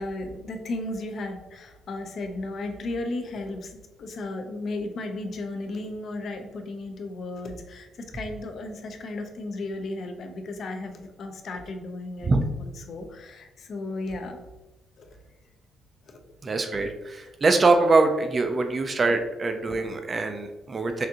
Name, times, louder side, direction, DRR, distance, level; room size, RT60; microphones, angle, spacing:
voice 1, 0.0-12.3 12.6-14.4 15.0-15.2 16.1-16.2, left 2 dB, 40° left, 5 dB, 0.5 m, -35 dB
voice 2, 16.4-21.1, right 3 dB, 25° right, 6 dB, 0.3 m, -23 dB
5.9 x 2.5 x 2.8 m, 1.0 s
cardioid pair, 180°, 0 cm